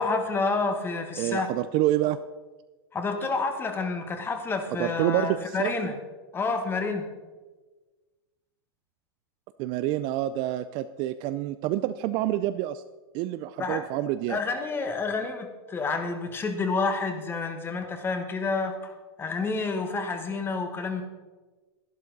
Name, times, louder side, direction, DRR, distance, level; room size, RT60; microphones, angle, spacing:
voice 1, 0.0-1.5 2.9-6.0 6.3-7.1 13.6-13.8 14.3-18.9 19.2-21.0, left 4 dB, 15° left, 7 dB, 1.3 m, -29 dB
voice 2, 1.2-2.2 4.8-5.9 9.6-12.8 13.1-14.4, right 13 dB, 35° right, 12 dB, 0.4 m, -27 dB
11.5 x 11.0 x 4.0 m, 1.3 s
hypercardioid pair, 130°, 13 cm